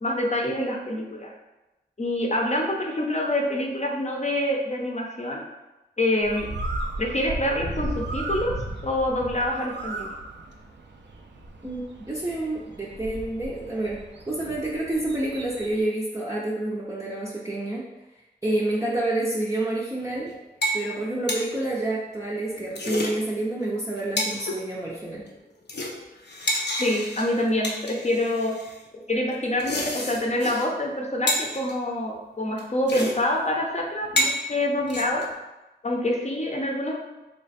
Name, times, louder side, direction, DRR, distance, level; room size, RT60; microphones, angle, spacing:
voice 1, 0.0-1.3 2.0-5.4 6.0-6.5 7.0-8.5 8.8-10.1 26.8-28.6 29.1-35.3 35.8-37.0, left 1 dB, 40° left, 0 dB, 0.7 m, -26 dB
Bird, 6.2-15.8, right 2 dB, 90° right, 0.4 m, -36 dB
voice 2, 11.6-17.9 18.4-20.3 20.7-25.3, right 2 dB, 15° right, -6 dB, 0.6 m, -28 dB
sound 1, 20.0-20.3 20.6-20.8 21.1-21.4 22.6-23.1 23.6-23.7 24.0-24.6 25.1-25.4 25.7-28.7 29.4-30.7 30.9-31.0 31.3-31.7 32.6-32.7 32.9-33.1 33.4-33.5 34.0-34.4 34.9-35.3, left 1 dB, 75° left, 0.5 m, -29 dB
3.2 x 2.2 x 4.0 m, 1.0 s
wide cardioid pair, 45°, 18 cm